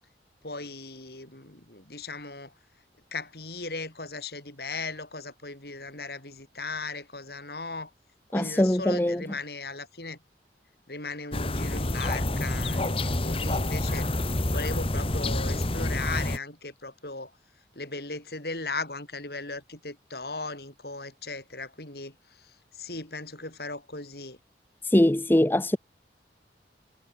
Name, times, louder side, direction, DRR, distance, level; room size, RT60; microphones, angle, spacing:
voice 1, 0.4-2.5 3.1-7.9 8.3-10.2 10.9-14.1 14.5-17.3 17.8-24.4, left 3 dB, 60° left, 5.7 m, -37 dB
voice 2, 8.3-9.2 24.9-25.8, left 1 dB, 10° left, 0.5 m, -22 dB
sound 1, 11.3-16.4, left 1 dB, 30° left, 1.5 m, -28 dB
head